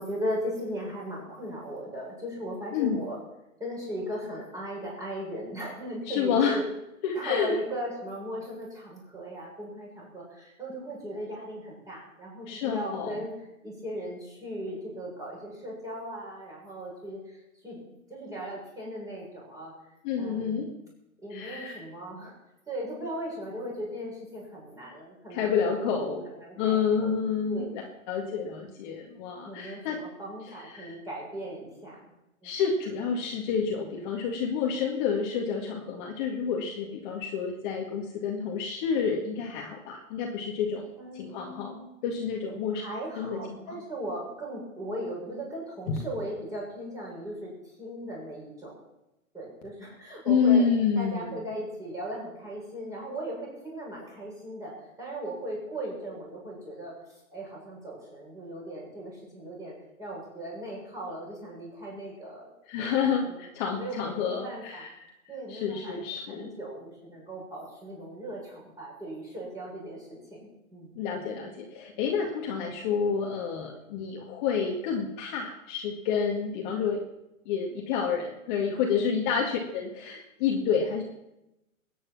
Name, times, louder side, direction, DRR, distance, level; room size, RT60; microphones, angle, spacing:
voice 1, 0.0-3.2 3.6-6.6 7.1-13.3 13.6-17.8 18.1-19.7 20.2-20.7 21.2-22.3 22.7-27.1 27.5-27.8 29.4-32.1 32.4-32.6 41.0-41.9 42.7-48.8 49.3-50.6 51.0-54.7 55.0-62.5 62.8-63.4 63.8-64.9 65.3-70.9 79.2-79.3, equal, 10° right, -4 dB, 7.2 m, -38 dB
voice 2, 6.1-6.6 7.0-7.6 12.5-13.2 20.0-20.7 21.3-21.8 25.3-26.2 26.6-30.0 30.7-31.0 32.4-40.9 41.1-42.8 43.2-43.6 45.9-46.0 50.3-51.4 62.7-65.1 65.5-66.5 71.0-77.0 77.5-81.0, left 6 dB, 35° left, 0 dB, 2.0 m, -29 dB
21.5 x 9.7 x 6.0 m, 0.92 s
hypercardioid pair, 140°, 41 cm